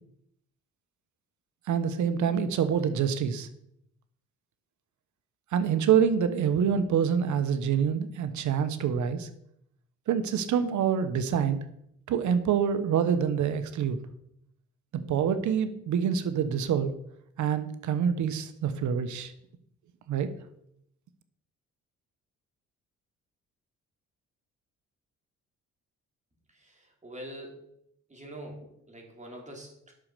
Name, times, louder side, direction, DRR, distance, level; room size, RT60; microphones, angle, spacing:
voice 1, 1.7-3.5 5.5-9.3 10.1-11.6 12.1-14.0 15.1-16.9 17.4-19.3 20.1-20.3, right 7 dB, 75° right, 11 dB, 1.1 m, -26 dB
voice 2, 27.0-27.6 28.1-29.9, right 1 dB, 25° right, 0 dB, 3.7 m, -44 dB
9.5 x 6.4 x 6.8 m, 0.74 s
cardioid pair, 90°, 30 cm